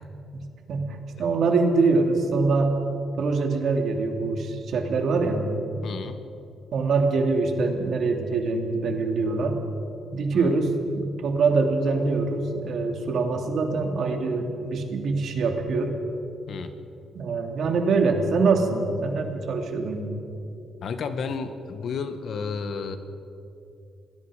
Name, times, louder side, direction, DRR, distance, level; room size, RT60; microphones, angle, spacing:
voice 1, 0.3-2.7 3.2-5.4 6.7-9.6 10.1-16.0 17.1-20.1, right 4 dB, 70° right, 3 dB, 2.8 m, -24 dB
voice 2, 5.8-6.2 10.3-10.5 16.5-16.7 20.8-23.0, left 5 dB, 65° left, 9 dB, 1.6 m, -32 dB
27.5 x 20.0 x 5.1 m, 2.7 s
cardioid pair, 85°, 0 cm